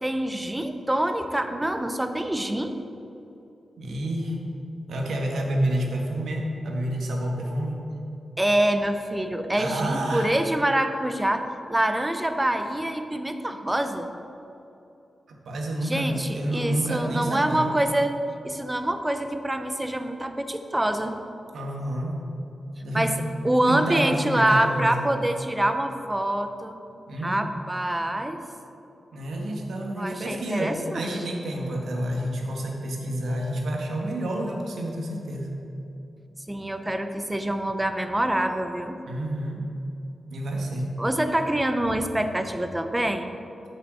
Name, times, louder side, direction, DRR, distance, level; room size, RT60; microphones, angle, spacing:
voice 1, 0.0-2.8 8.4-14.1 15.8-18.1 18.4-21.1 22.9-23.1 23.4-26.8 27.2-28.4 30.0-31.1 36.5-39.0 41.0-43.3, right 1 dB, 10° right, 7 dB, 0.6 m, -25 dB
voice 2, 3.8-4.4 4.9-7.8 9.6-10.3 15.4-17.7 21.5-22.2 22.8-23.1 23.7-25.0 27.1-27.4 29.1-35.5 39.1-39.6 40.3-40.9, right 1 dB, 80° right, 0 dB, 1.4 m, -29 dB
7.9 x 5.6 x 7.5 m, 2.8 s
wide cardioid pair, 105°, 0 cm